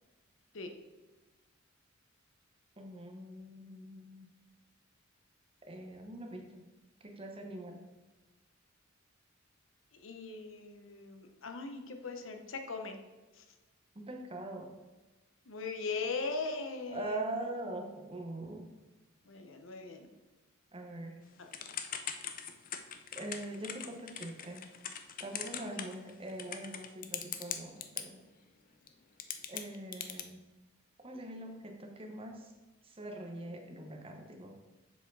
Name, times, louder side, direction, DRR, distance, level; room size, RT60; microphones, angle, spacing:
voice 1, 2.8-4.3 5.7-6.6 7.0-7.8 13.9-14.7 16.9-18.7 20.7-21.2 23.2-24.6 25.2-28.2 29.5-30.4 31.0-32.5 32.8-34.5, right 1 dB, 25° right, 3 dB, 0.9 m, -43 dB
voice 2, 9.9-13.0 13.3-13.5 15.5-17.4 19.2-20.1 21.4-21.5 25.6-25.7, left 4 dB, 65° left, 5 dB, 0.8 m, -40 dB
Typing / Telephone, 21.5-28.0 28.9-29.0 29.2-30.2, left 9 dB, 40° left, 0.5 m, -40 dB
6.9 x 4.9 x 4.7 m, 1.2 s
head